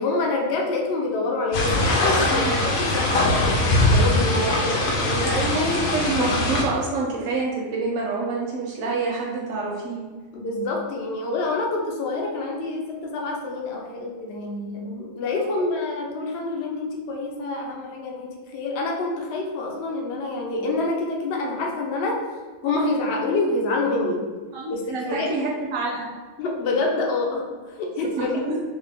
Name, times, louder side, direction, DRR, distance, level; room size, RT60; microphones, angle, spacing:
voice 1, 0.0-5.3 10.3-22.2 22.6-24.2 24.7-25.4 26.4-28.4, left 3 dB, 60° left, 0 dB, 0.8 m, -27 dB
sound 1, 1.5-6.6, left 1 dB, 90° left, 1.0 m, -21 dB
voice 2, 2.3-2.6 5.2-10.0 15.4-15.6 24.5-26.1 28.0-28.6, right 3 dB, 85° right, -3 dB, 1.0 m, -27 dB
2.8 x 2.7 x 3.3 m, 1.4 s
omnidirectional pair, 1.4 m